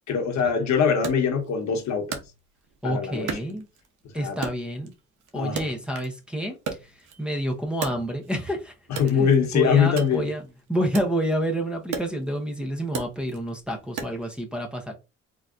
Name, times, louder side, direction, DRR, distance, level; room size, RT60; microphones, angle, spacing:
voice 1, 0.1-2.2 2.8-3.3 4.2-4.4 5.3-5.7 8.9-10.3, left 6 dB, 65° left, 1.1 m, -22 dB
Wood, 1.0-2.8 3.3-4.0 4.4-6.2 6.5-8.5 8.9-14.4, right 6 dB, 80° right, 0.9 m, -37 dB
voice 2, 2.8-3.6 4.1-4.9 5.3-8.7 9.1-10.4 10.7-14.9, equal, 5° right, 0.9 m, -29 dB
3.9 x 2.8 x 2.4 m
cardioid pair, 90°, 30 cm